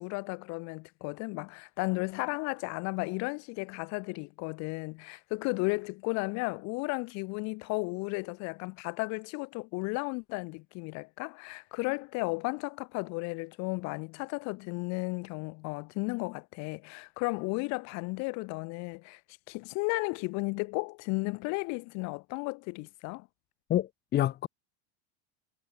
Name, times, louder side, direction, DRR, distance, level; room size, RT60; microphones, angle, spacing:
voice 1, 0.0-19.2 19.5-23.3, left 28 dB, 50° left, 2.0 m, -34 dB
voice 2, 23.7-24.5, left 12 dB, 30° left, 1.2 m, -28 dB
supercardioid pair, 140°, 34 cm